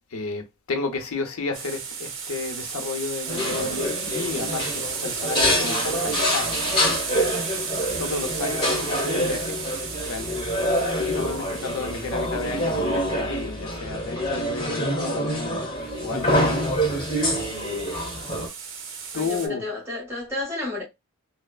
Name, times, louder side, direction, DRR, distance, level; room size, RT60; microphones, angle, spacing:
voice 1, 0.1-6.7 7.5-7.7 8.0-9.6 10.0-10.4 11.0-15.7 16.0-16.6 19.1-19.7, left 4 dB, 85° left, 0.6 m, -32 dB
sound 1, 1.5-13.0 15.9-19.5, right 6 dB, 60° right, 0.7 m, -34 dB
sound 2, 3.3-18.5, equal, 25° left, 1.1 m, -26 dB
voice 2, 19.1-20.8, left 2 dB, 10° right, 1.3 m, -31 dB
3.1 x 2.0 x 2.3 m
head